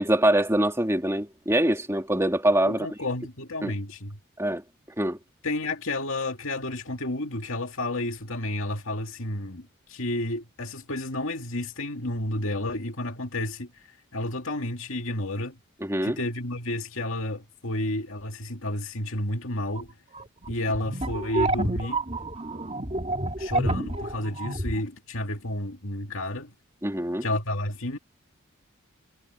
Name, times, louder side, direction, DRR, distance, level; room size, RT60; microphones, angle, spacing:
voice 1, 0.0-2.9 3.6-3.7 4.4-4.6 5.0-5.2 15.8-16.2 26.8-27.3, right 1 dB, 10° right, 2.7 m, -24 dB
voice 2, 2.7-4.2 5.4-13.7 14.1-15.6 16.0-19.9 20.5-22.0 23.4-26.5 27.2-28.0, left 1 dB, 60° left, 2.6 m, -31 dB
sound 1, 19.8-19.9 20.1-24.8, right 2 dB, 30° right, 2.6 m, -29 dB
head